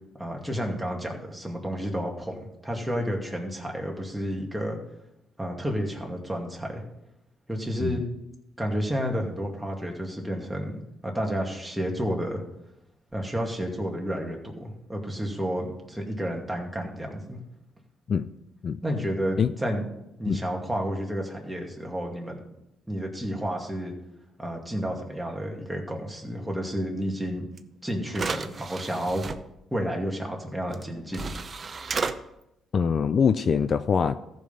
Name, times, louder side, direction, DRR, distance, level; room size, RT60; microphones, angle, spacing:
voice 1, 0.2-4.8 5.4-6.8 7.5-8.0 8.6-12.4 13.1-17.4 18.8-19.9 20.2-22.4 22.9-23.9 24.4-27.5 27.8-29.3 29.7-31.2, equal, 5° right, 0 dB, 2.4 m, -31 dB
sound 1, 27.6-27.7 28.1-29.4 30.7-30.8 31.1-32.1, right 4 dB, 40° right, 0.7 m, -32 dB
voice 2, 32.7-34.2, left 6 dB, 50° left, 12 dB, 0.4 m, -23 dB
14.5 x 5.4 x 5.7 m, 0.86 s
cardioid pair, 90°, 0 cm